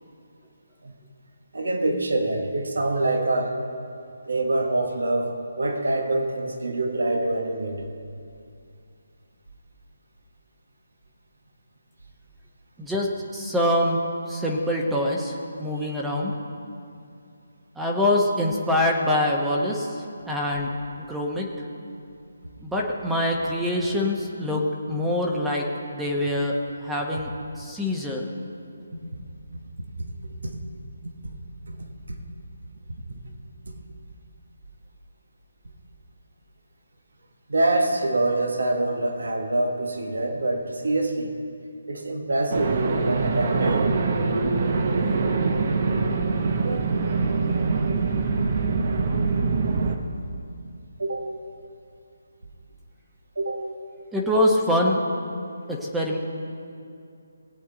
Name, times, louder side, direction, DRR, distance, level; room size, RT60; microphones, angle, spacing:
voice 1, 1.5-3.6 4.2-7.8 15.9-16.0 28.9-29.0 31.2-31.4 31.7-31.8 32.1-32.2 37.5-41.4 41.9-43.9 46.6-47.0 51.0-51.3 53.3-53.7, right 2 dB, 75° right, 4 dB, 1.6 m, -25 dB
voice 2, 12.8-14.0 14.3-16.3 17.8-19.9 20.3-20.7 21.0-21.5 22.6-26.5 26.8-27.3 27.6-28.2 54.1-55.0 55.7-56.2, left 1 dB, 5° right, -2 dB, 1.2 m, -24 dB
sound 1, 42.5-50.0, right 4 dB, 45° right, 1.0 m, -24 dB
19.5 x 8.4 x 4.0 m, 2.5 s
figure-of-eight pair, 155°, 0 cm